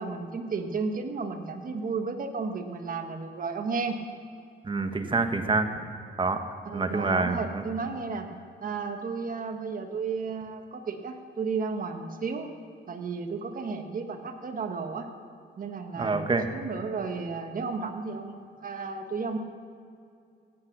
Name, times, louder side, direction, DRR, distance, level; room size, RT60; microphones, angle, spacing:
voice 1, 0.0-4.0 6.6-8.3 8.6-12.5 12.9-15.1 15.6-19.4, right 4 dB, 45° right, 5 dB, 1.5 m, -33 dB
voice 2, 4.6-5.7 6.2-6.4 6.7-7.6 15.9-16.4, right 3 dB, 25° right, 7 dB, 1.2 m, -26 dB
16.0 x 8.6 x 6.1 m, 2.4 s
cardioid pair, 90°, 20 cm